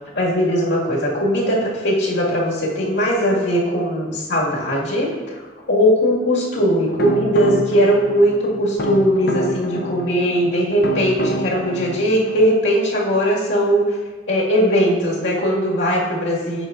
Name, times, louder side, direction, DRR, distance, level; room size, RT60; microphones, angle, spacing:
voice 1, 0.2-5.4 5.7-14.0 14.3-16.7, equal, 75° left, -5 dB, 2.0 m, -19 dB
sound 1, 6.6-12.4, left 1 dB, 60° left, 0.7 m, -27 dB
7.8 x 6.2 x 2.5 m, 1.4 s
head